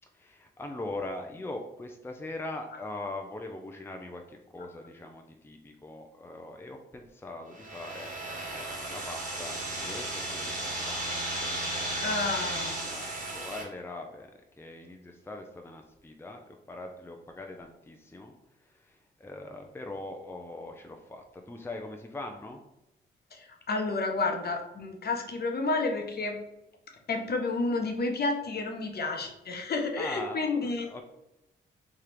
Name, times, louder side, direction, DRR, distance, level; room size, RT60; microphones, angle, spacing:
voice 1, 0.1-11.0 12.8-14.3 14.6-18.3 18.7-22.6 30.0-31.0, left 2 dB, 10° left, 3 dB, 0.5 m, -41 dB
sound 1, 7.5-13.6, right 1 dB, 35° right, 1.4 m, -34 dB
voice 2, 12.0-12.7 23.3-26.4 27.1-30.9, left 3 dB, 50° left, 3 dB, 0.9 m, -30 dB
3.3 x 2.4 x 4.4 m, 0.91 s
supercardioid pair, 50°, 21 cm